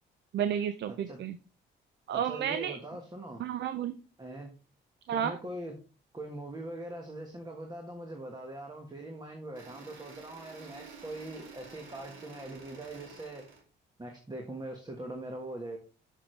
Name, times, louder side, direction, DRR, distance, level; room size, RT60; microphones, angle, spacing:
voice 1, 0.3-1.4 2.1-2.8 3.4-3.9 5.1-5.4, right 9 dB, 65° right, 12 dB, 0.6 m, -31 dB
voice 2, 2.1-3.4 4.2-4.5 5.1-5.7 6.1-13.5 14.0-15.8, right 1 dB, 20° right, 2 dB, 1.5 m, -42 dB
sound 1, 9.5-13.6, right 4 dB, 80° right, 2.7 m, -50 dB
7.0 x 6.6 x 3.3 m, 0.35 s
cardioid pair, 90°, 20 cm